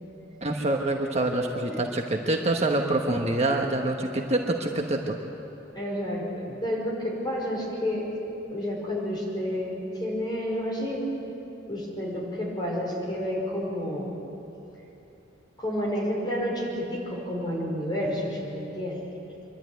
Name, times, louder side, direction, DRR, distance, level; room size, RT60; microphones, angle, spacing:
voice 1, 0.4-5.1, right 2 dB, 35° right, 2 dB, 1.2 m, -26 dB
voice 2, 5.7-8.1 8.5-11.1 11.7-14.2 15.6-19.0, equal, 20° left, -3 dB, 5.4 m, -30 dB
26.0 x 12.0 x 9.3 m, 3.0 s
head